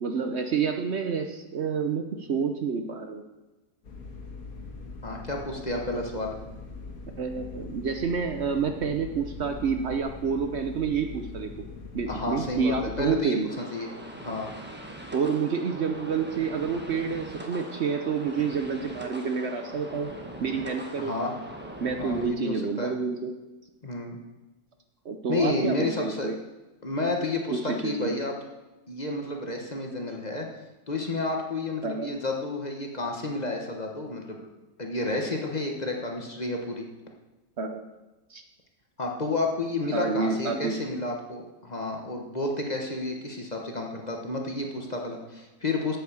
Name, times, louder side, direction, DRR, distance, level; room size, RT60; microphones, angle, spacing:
voice 1, 0.0-3.2 7.2-11.5 11.9-13.5 15.1-20.1 20.4-21.1 21.8-23.3 25.0-26.3 27.5-28.2 31.8-32.1 37.6-37.9 38.3-38.4 39.9-40.7, right 5 dB, 55° right, 5 dB, 1.0 m, -28 dB
sound 1, 3.8-13.2, left 4 dB, 85° left, 1.9 m, -42 dB
voice 2, 5.0-6.4 12.1-13.9 14.2-14.5 21.0-21.4 22.0-22.9 23.8-24.2 25.3-26.3 26.8-28.3 28.9-30.5 30.9-34.4 34.8-36.9 39.0-46.0, left 2 dB, 30° left, 1 dB, 1.2 m, -31 dB
sound 2, 13.5-22.3, right 1 dB, 10° right, 1.0 m, -41 dB
8.4 x 8.0 x 7.0 m, 1.1 s
omnidirectional pair, 1.5 m